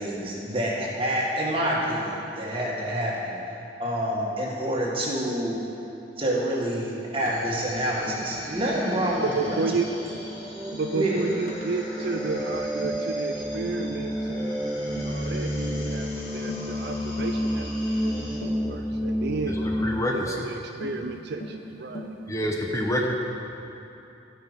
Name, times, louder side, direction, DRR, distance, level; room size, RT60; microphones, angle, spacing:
voice 1, 0.0-5.6 6.2-10.0 10.9-11.3, equal, 30° right, -4 dB, 1.9 m, -27 dB
sound 1, 7.2-18.4, left 1 dB, 85° left, 2.1 m, -43 dB
Tap, 7.3-7.4 8.1-8.3 8.9-9.2 9.5-9.7 10.1-10.3 10.7-10.9 11.5-11.7 12.2-12.4 12.8-13.1 13.6-13.9 14.3-14.5 15.0-15.2 15.6-15.8 16.5-16.7 17.2-17.4 18.4-18.7 19.8-20.0 20.8-21.0 21.4-21.6 22.0-22.2, equal, 50° left, 1.0 m, -39 dB
sound 2, 8.1-20.0, equal, 5° right, 0.4 m, -31 dB
voice 2, 9.2-9.9 10.8-14.6 15.0-18.4 18.7-19.6 20.1-22.2, right 4 dB, 65° right, 5 dB, 0.5 m, -32 dB
voice 3, 19.5-20.5 22.3-23.1, equal, 15° left, 0 dB, 0.9 m, -27 dB
16.0 x 5.9 x 5.3 m, 2.8 s
head